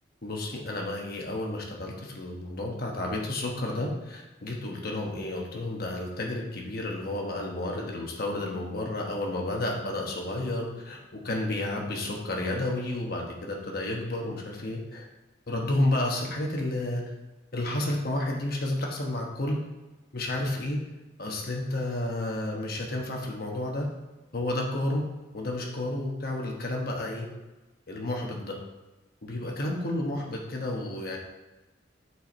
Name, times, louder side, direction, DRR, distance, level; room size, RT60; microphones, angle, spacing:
voice 1, 0.2-15.1 15.5-17.0 17.5-19.6 20.1-20.8 21.2-23.9 24.3-25.0 25.3-27.3 27.9-28.6 29.2-31.2, left 1 dB, 50° left, 0 dB, 1.1 m, -31 dB
6.2 x 4.7 x 4.3 m, 1.1 s
head